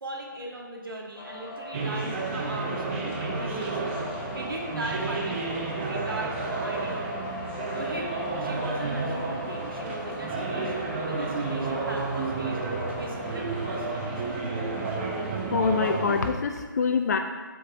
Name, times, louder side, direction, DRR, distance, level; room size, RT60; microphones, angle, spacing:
voice 1, 0.0-4.0 4.3-7.3 7.7-12.6 13.0-14.2, right 1 dB, 80° right, 0 dB, 1.7 m, -39 dB
sound 1, 1.1-15.3, left 3 dB, 20° left, 0.7 m, -39 dB
sound 2, 1.7-16.3, right 3 dB, 30° right, 1.1 m, -31 dB
voice 2, 15.2-17.2, left 5 dB, 50° left, 5 dB, 0.7 m, -26 dB
8.0 x 5.1 x 4.1 m, 1.4 s
figure-of-eight pair, 150°, 11 cm